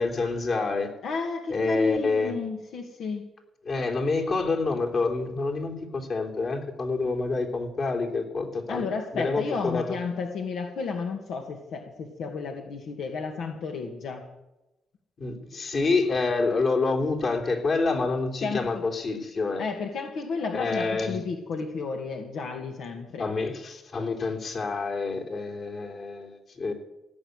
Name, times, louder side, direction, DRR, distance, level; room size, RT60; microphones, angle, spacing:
voice 1, 0.0-0.9 1.5-2.3 3.6-8.8 9.1-9.9 15.2-19.6 20.5-21.2 23.2-26.7, left 3 dB, 45° left, 2 dB, 3.3 m, -27 dB
voice 2, 1.0-3.2 8.7-14.2 18.4-18.8 19.6-23.3, left 4 dB, 70° left, 3 dB, 2.0 m, -32 dB
17.0 x 7.9 x 8.1 m, 0.97 s
cardioid pair, 90°, 0 cm